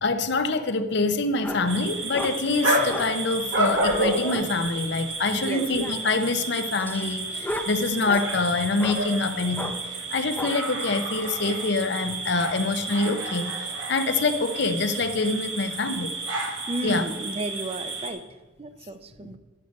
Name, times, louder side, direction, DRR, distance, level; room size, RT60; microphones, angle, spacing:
voice 1, 0.0-9.8 10.1-16.1 16.8-17.0 19.2-19.3, left 3 dB, 65° left, 10 dB, 0.7 m, -25 dB
sound 1, 1.4-1.7 2.1-2.4 2.9-3.2 3.7-4.5 5.5-6.1 6.8-8.3 8.8-9.0 9.6-9.8 10.4-10.6, left 1 dB, 10° left, 0.7 m, -34 dB
sound 2, 1.6-18.1, right 2 dB, 75° right, 1.5 m, -31 dB
voice 2, 16.7-18.2 18.6-19.4, right 2 dB, 30° right, 11 dB, 0.6 m, -32 dB
11.0 x 6.5 x 5.3 m, 1.2 s
head